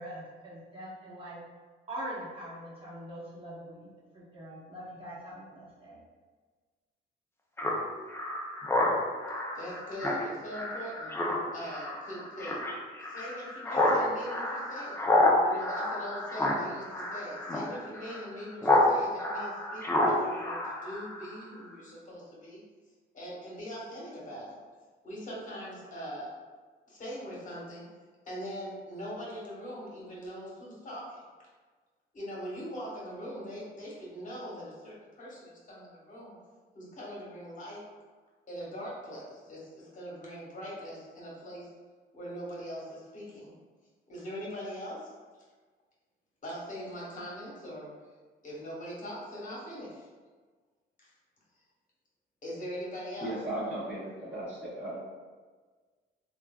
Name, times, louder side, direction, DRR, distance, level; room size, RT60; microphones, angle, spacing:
voice 1, 0.0-1.4 1.9-6.0, right 1 dB, 25° right, -8 dB, 1.2 m, -43 dB
Speech synthesizer, 7.6-18.9 19.2-21.4, left 1 dB, 10° left, 0.5 m, -29 dB
voice 2, 9.5-11.1 11.5-12.6 13.0-15.0 15.4-22.6 23.1-24.5 25.0-26.3 26.9-27.8 28.3-31.2 32.1-36.4 36.7-37.8 38.5-41.7 42.1-43.5 44.1-45.1 46.4-47.9 48.4-50.1 51.0-51.1 52.4-53.4, equal, 40° left, -5 dB, 1.1 m, -41 dB
voice 3, 53.2-55.0, right 1 dB, 5° right, -10 dB, 1.0 m, -36 dB
3.1 x 2.4 x 2.2 m, 1.4 s
cardioid pair, 90°, 20 cm